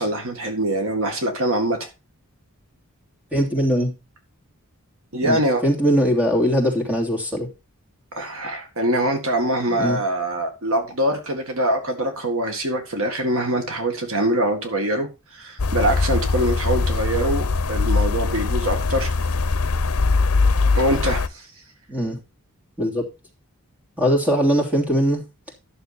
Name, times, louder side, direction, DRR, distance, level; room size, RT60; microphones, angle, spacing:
voice 1, 0.0-1.9 5.1-5.6 8.1-19.1 20.8-21.4, right 1 dB, 65° right, 2.0 m, -23 dB
voice 2, 3.3-3.9 5.2-7.5 9.7-10.0 21.9-22.2 22.8-23.0 24.0-25.2, equal, 5° right, 2.9 m, -21 dB
sound 1, 15.6-21.3, left 3 dB, 70° left, 0.8 m, -21 dB
11.5 x 6.8 x 4.2 m
head